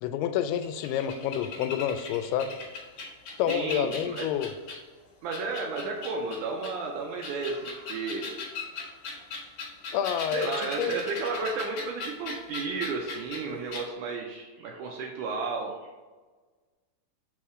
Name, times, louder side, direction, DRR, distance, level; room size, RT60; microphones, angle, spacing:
voice 1, 0.0-2.5 3.4-4.5 9.9-10.5 10.8-10.9, left 10 dB, 85° left, 9 dB, 2.5 m, -28 dB
sound 1, 0.6-4.9 5.3-6.7 7.1-13.4 13.7-13.8, left 3 dB, 60° left, 2.1 m, -38 dB
voice 2, 3.5-4.3 5.2-8.3 10.3-15.7, right 4 dB, 90° right, 0 dB, 1.7 m, -33 dB
5.3 x 4.3 x 4.8 m, 1.4 s
omnidirectional pair, 4.5 m